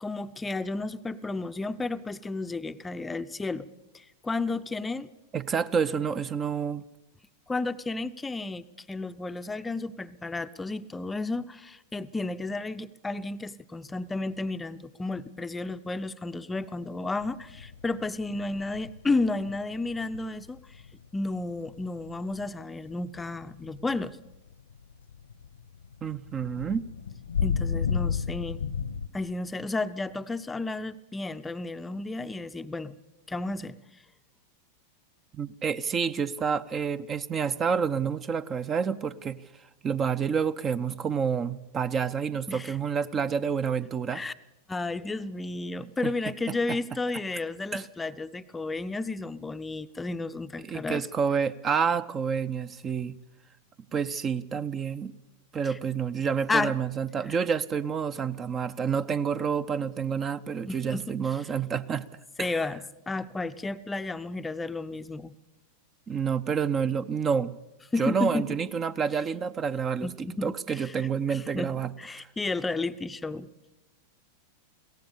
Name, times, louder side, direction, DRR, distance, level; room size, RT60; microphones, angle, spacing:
voice 1, 0.0-3.7 3.9-5.1 7.5-20.8 21.1-24.2 27.4-28.6 29.1-33.0 33.3-33.8 42.5-42.7 44.1-44.3 44.7-51.0 55.6-55.8 56.5-56.8 57.3-57.4 60.7-61.5 62.4-65.3 67.9-68.5 70.0-71.7 72.0-73.5, left 3 dB, 10° left, 12 dB, 0.7 m, -32 dB
voice 2, 5.3-6.8 26.0-26.9 35.3-39.4 39.8-44.2 46.0-46.1 47.7-47.8 50.6-53.2 53.9-55.1 55.5-62.1 62.4-62.5 66.1-67.5 68.0-72.3, right 6 dB, 25° right, 14 dB, 0.6 m, -28 dB
sound 1, 17.2-22.6 23.0-29.1, left 6 dB, 70° left, 0.9 m, -33 dB
22.5 x 17.5 x 6.9 m, 0.98 s
figure-of-eight pair, 90°, 0 cm